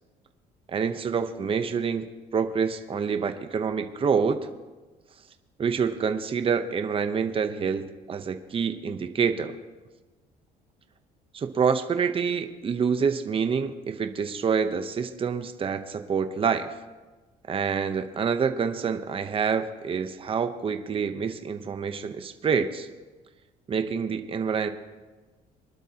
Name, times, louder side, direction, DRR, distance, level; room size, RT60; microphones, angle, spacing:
voice 1, 0.7-4.4 5.6-9.6 11.3-16.7 17.5-22.9 23.7-24.7, right 6 dB, 35° right, 8 dB, 0.8 m, -27 dB
23.0 x 12.0 x 2.9 m, 1.3 s
cardioid pair, 110°, 17 cm